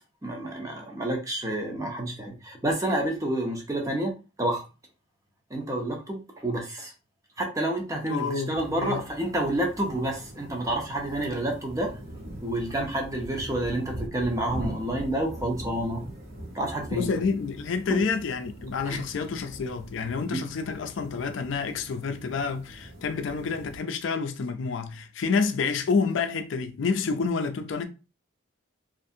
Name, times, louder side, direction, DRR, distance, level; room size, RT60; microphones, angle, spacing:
voice 1, 0.2-4.1 4.4-4.6 5.5-6.9 7.4-12.0 12.4-16.1 16.5-17.1 17.9-18.0 18.8-19.0, right 1 dB, 15° right, 0.5 m, -29 dB
voice 2, 8.1-9.0 16.9-27.9, left 5 dB, 70° left, 0.4 m, -28 dB
sound 1, 8.5-23.8, right 1 dB, 50° right, 1.2 m, -42 dB
2.5 x 2.4 x 2.6 m
head